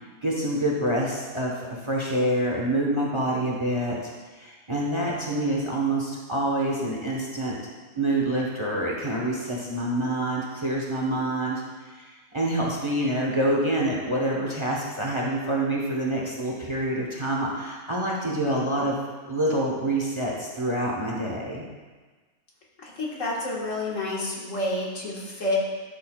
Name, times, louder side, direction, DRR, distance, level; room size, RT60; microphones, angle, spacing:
voice 1, 0.2-4.0 4.3-7.6 8.0-19.0 19.3-21.6, right 1 dB, 25° right, -3 dB, 1.0 m, -26 dB
voice 2, 22.8-25.6, left 1 dB, 65° left, -4 dB, 1.9 m, -29 dB
12.0 x 6.7 x 2.3 m, 1.3 s
omnidirectional pair, 1.4 m